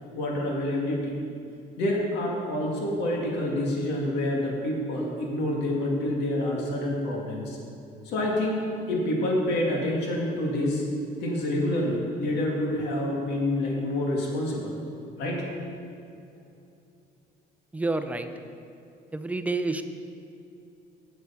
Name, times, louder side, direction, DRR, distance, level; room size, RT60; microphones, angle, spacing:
voice 1, 0.1-1.1 1.8-7.6 8.0-8.6 8.9-10.8 11.2-14.7 15.2-15.4, left 1 dB, 80° left, -2 dB, 2.2 m, -27 dB
voice 2, 17.7-18.3 19.1-19.8, right 3 dB, 10° right, 8 dB, 0.5 m, -28 dB
8.2 x 8.1 x 5.8 m, 2.7 s
cardioid pair, 110°, 17 cm